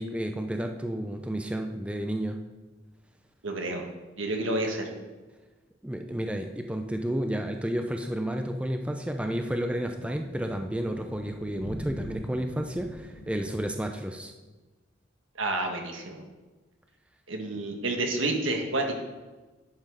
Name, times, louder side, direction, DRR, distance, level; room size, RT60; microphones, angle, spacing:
voice 1, 0.0-2.4 5.8-14.3, right 1 dB, 5° right, 5 dB, 0.5 m, -31 dB
voice 2, 3.4-3.8 4.2-4.9 15.4-16.2 17.3-18.9, right 2 dB, 70° right, 2 dB, 1.6 m, -29 dB
sound 1, 8.5-13.6, equal, 85° left, 3.2 m, -44 dB
10.5 x 6.0 x 4.9 m, 1.2 s
head